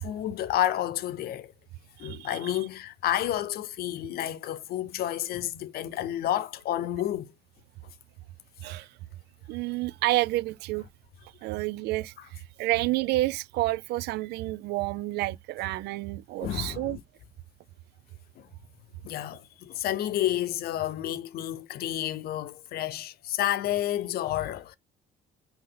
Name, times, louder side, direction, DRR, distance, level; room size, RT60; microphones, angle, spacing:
voice 1, 0.0-1.5 2.0-7.3 16.4-17.0 18.4-18.5 19.0-24.8, left 12 dB, 65° left, 0.7 m, -30 dB
voice 2, 2.0-2.5 8.6-8.9 9.5-10.9 11.4-17.0, right 18 dB, 75° right, 0.4 m, -29 dB
5.7 x 2.7 x 3.3 m
cardioid pair, 110°, 17 cm